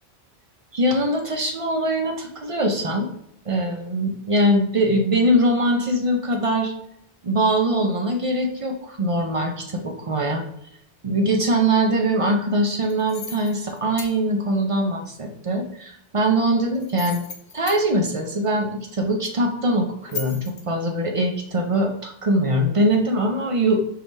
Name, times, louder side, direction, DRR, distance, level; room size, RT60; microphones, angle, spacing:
voice 1, 0.7-3.1 3.5-6.7 7.2-10.4 11.0-17.3 17.5-20.4 20.7-24.0, right 1 dB, 45° right, 2 dB, 0.4 m, -22 dB
sound 1, 12.8-14.1 16.8-17.8 20.0-20.6, left 6 dB, 55° left, 0.7 m, -36 dB
4.6 x 3.5 x 2.6 m, 0.74 s
omnidirectional pair, 1.1 m